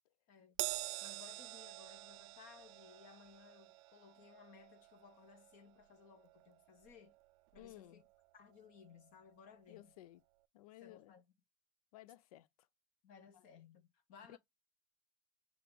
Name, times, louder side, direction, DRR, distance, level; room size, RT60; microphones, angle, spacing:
Crash cymbal, 0.6-7.2 7.5-7.8 8.8-8.9, right 20 dB, 50° right, 0.4 m, -47 dB
voice 1, 1.0-7.1 7.5-8.0 8.3-9.9 10.8-11.2 13.0-14.4, left 6 dB, 45° left, 0.9 m, -60 dB
voice 2, 7.6-8.0 9.7-10.2 10.5-11.1 11.9-12.7 13.3-13.5 14.3-14.4, left 15 dB, 70° left, 0.4 m, -57 dB
5.4 x 2.5 x 3.8 m
hypercardioid pair, 110°, 19 cm